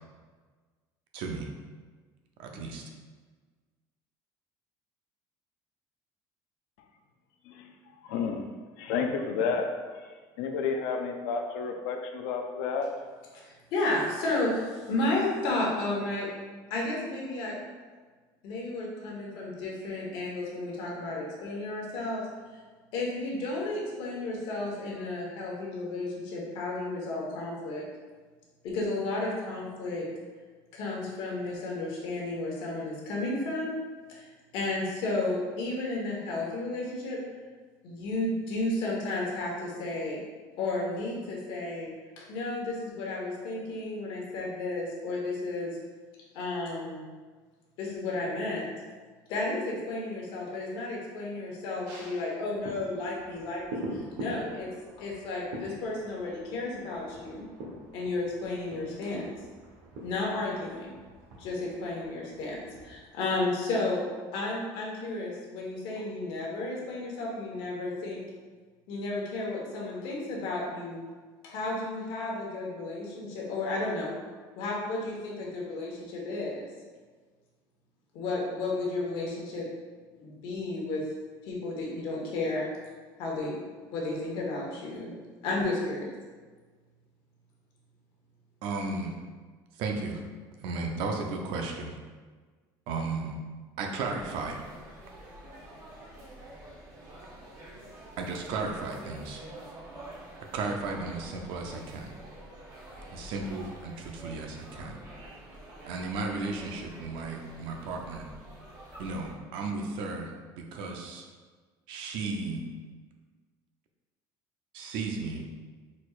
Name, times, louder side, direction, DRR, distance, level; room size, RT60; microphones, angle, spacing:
voice 1, 1.1-1.5 2.4-2.8 88.6-89.1 89.7-90.2 90.6-92.0 92.9-93.4 93.8-94.6 98.2-99.4 100.5-102.1 103.1-105.0 105.8-108.3 109.0-110.3 110.6-111.3 111.9-112.6 114.7-115.4, right 3 dB, 70° right, 2 dB, 0.6 m, -34 dB
voice 2, 8.0-12.9, left 5 dB, 90° left, 4 dB, 0.5 m, -31 dB
voice 3, 13.3-16.3 16.7-17.5 18.4-22.2 22.9-27.9 28.6-30.1 30.7-33.8 34.1-34.3 34.5-37.2 37.8-40.2 40.6-41.9 42.2-45.8 46.3-47.1 47.8-48.7 49.3-54.7 55.0-57.4 57.9-59.3 60.0-61.0 61.4-64.0 64.3-68.2 68.9-71.0 71.4-74.1 74.6-76.7 78.1-79.7 80.2-81.1 81.4-82.7 83.2-83.5 83.9-85.1 85.4-86.1, left 2 dB, 70° left, -3 dB, 1.3 m, -32 dB
sound 1, 51.8-63.5 63.9-64.0, equal, 90° right, 1.1 m, -44 dB
sound 2, 94.0-109.3, right 1 dB, 40° right, 1.3 m, -47 dB
4.4 x 4.1 x 2.4 m, 1.4 s
cardioid pair, 145°, 9 cm